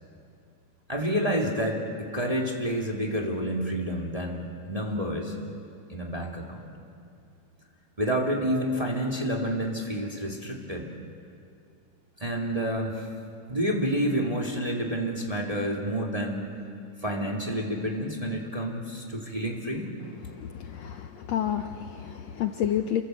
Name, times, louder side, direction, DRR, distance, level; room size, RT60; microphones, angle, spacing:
voice 1, 0.9-5.3 5.9-6.6 8.0-10.9 12.2-13.1 13.5-16.7 17.0-19.9, equal, 10° right, 0 dB, 2.1 m, -29 dB
voice 2, 20.3-23.0, left 10 dB, 70° left, 6 dB, 1.8 m, -30 dB
28.0 x 24.0 x 7.8 m, 2.4 s
omnidirectional pair, 3.7 m